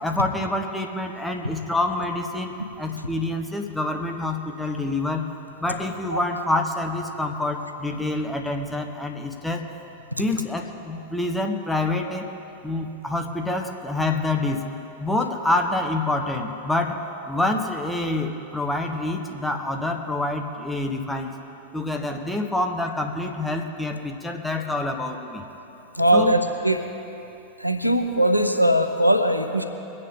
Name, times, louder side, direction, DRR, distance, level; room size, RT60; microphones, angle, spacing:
voice 1, 0.0-5.3 5.6-9.6 10.2-12.3 12.6-14.7 15.0-21.3 21.7-25.4 26.1-26.4, left 2 dB, 5° left, 3 dB, 1.2 m, -27 dB
voice 2, 26.0-26.8 27.6-29.6, right 1 dB, 90° left, 6 dB, 0.8 m, -20 dB
23.0 x 9.4 x 3.8 m, 2.9 s
figure-of-eight pair, 90°, 0 cm